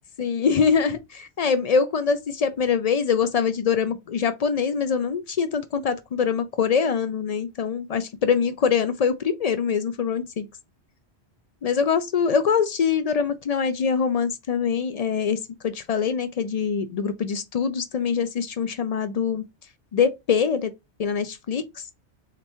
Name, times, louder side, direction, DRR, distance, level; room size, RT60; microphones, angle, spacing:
voice 1, 0.2-10.5 11.6-19.4 19.9-20.7 21.0-21.8, left 6 dB, 55° left, 0.4 m, -24 dB
3.5 x 2.9 x 4.2 m
omnidirectional pair, 1.1 m